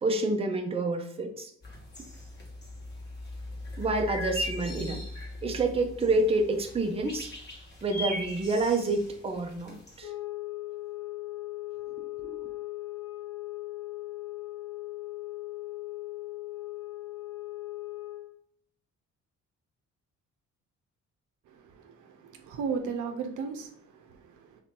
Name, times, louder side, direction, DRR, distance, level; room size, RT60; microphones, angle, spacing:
voice 1, 0.0-1.5 3.8-5.0 5.4-7.3 7.8-10.1 12.2-12.5, right 2 dB, 20° right, 3 dB, 0.6 m, -28 dB
sound 1, 1.6-10.0, left 1 dB, 35° left, 1.5 m, -39 dB
sound 2, 10.0-18.4, left 18 dB, 70° left, 0.9 m, -38 dB
voice 2, 21.5-24.6, right 5 dB, 80° right, 5 dB, 0.7 m, -36 dB
3.3 x 2.8 x 4.5 m, 0.65 s
cardioid pair, 90°, 30 cm